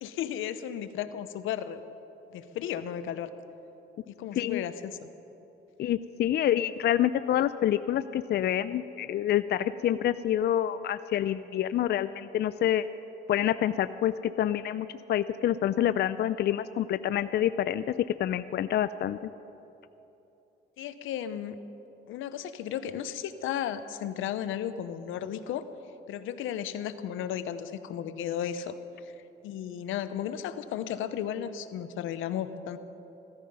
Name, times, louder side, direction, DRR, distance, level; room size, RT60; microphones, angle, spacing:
voice 1, 0.0-1.8 2.3-3.3 4.1-5.1 20.8-21.6 22.1-25.6 26.1-28.7 29.0-29.1 29.4-32.8, left 10 dB, 85° left, 12 dB, 0.8 m, -34 dB
voice 2, 4.4-4.7 5.8-12.9 13.3-17.9 18.2-19.2, left 11 dB, 55° left, 13 dB, 0.4 m, -27 dB
16.0 x 14.0 x 5.5 m, 3.0 s
cardioid pair, 90°, 20 cm